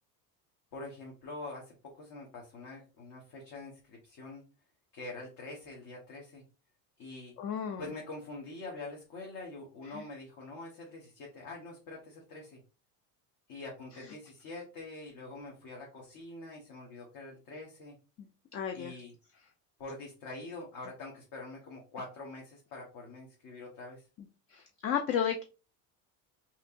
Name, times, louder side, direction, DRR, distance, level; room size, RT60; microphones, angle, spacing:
voice 1, 0.7-4.4 4.9-6.4 7.0-7.3 7.8-12.6 13.5-17.9 18.7-19.1 19.8-24.0, left 2 dB, 50° left, -1 dB, 1.2 m, -45 dB
voice 2, 7.4-7.8 9.9-10.0 18.5-18.9 24.5-25.4, left 8 dB, 30° left, 5 dB, 0.4 m, -32 dB
3.1 x 2.9 x 2.5 m, 0.32 s
supercardioid pair, 100°, 46 cm